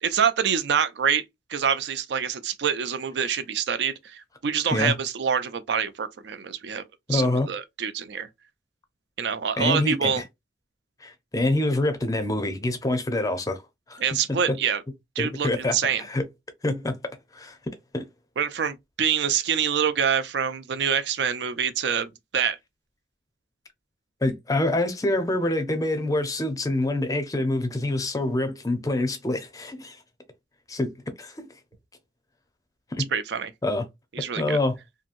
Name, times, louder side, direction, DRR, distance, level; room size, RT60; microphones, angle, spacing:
voice 1, 0.0-1.2 1.5-6.8 7.1-8.3 9.2-10.2 14.0-14.8 15.2-16.0 18.4-22.6 33.1-33.5 34.1-34.6, right 7 dB, 75° right, 0.4 m, -26 dB
voice 2, 7.1-7.5 9.6-10.2 11.0-13.6 13.9-14.0 14.3-14.6 15.2-16.2 16.6-17.0 17.3-18.1 24.2-30.0 30.7-31.5 32.9-33.1 33.6-33.8 34.4-34.8, left 2 dB, 20° left, 0.5 m, -26 dB
2.9 x 2.6 x 2.4 m
head